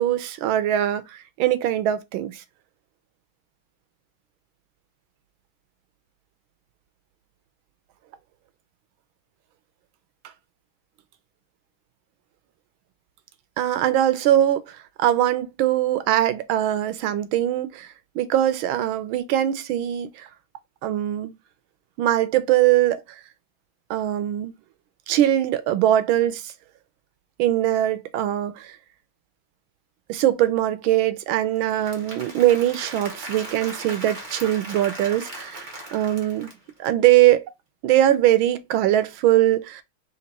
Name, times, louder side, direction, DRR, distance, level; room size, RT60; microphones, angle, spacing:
voice 1, 0.0-2.4 13.6-17.9 18.1-20.3 20.8-21.3 22.0-23.2 23.9-24.5 25.1-26.5 27.4-28.7 30.1-36.5 36.8-37.5 37.8-39.8, right 12 dB, 90° right, 1.4 m, -21 dB
Applause / Crowd, 31.5-36.9, right 2 dB, 30° right, 1.0 m, -38 dB
4.2 x 2.6 x 4.0 m
omnidirectional pair, 2.2 m